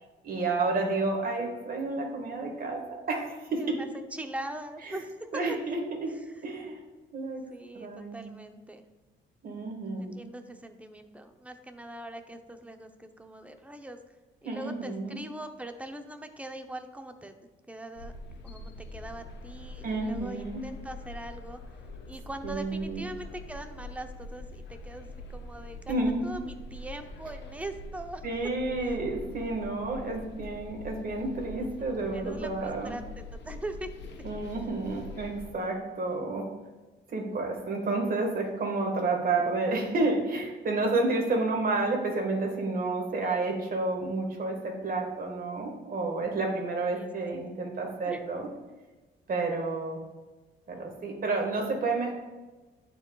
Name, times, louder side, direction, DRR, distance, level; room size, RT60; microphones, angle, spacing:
voice 1, 0.2-3.8 4.9-5.0 5.3-6.1 6.4-6.8 7.1-7.4 7.7-8.3 9.4-10.2 14.4-15.2 19.8-20.6 22.4-23.0 25.9-26.4 28.2-32.9 34.2-36.5 37.1-48.5 49.3-50.0 50.7-52.1, right 3 dB, 45° right, 1 dB, 1.7 m, -30 dB
voice 2, 3.6-5.4 7.5-8.8 10.0-14.0 14.4-17.4 17.7-18.1 18.4-21.6 22.1-26.0 26.2-28.3 28.9-29.0 31.6-34.3 43.2-43.5 46.9-47.1 47.4-47.5 48.1-48.2, right 1 dB, 5° right, 7 dB, 0.7 m, -42 dB
sound 1, 17.9-35.5, left 2 dB, 65° left, 0.9 m, -44 dB
12.0 x 4.6 x 2.4 m, 1.2 s
cardioid pair, 90°, 20 cm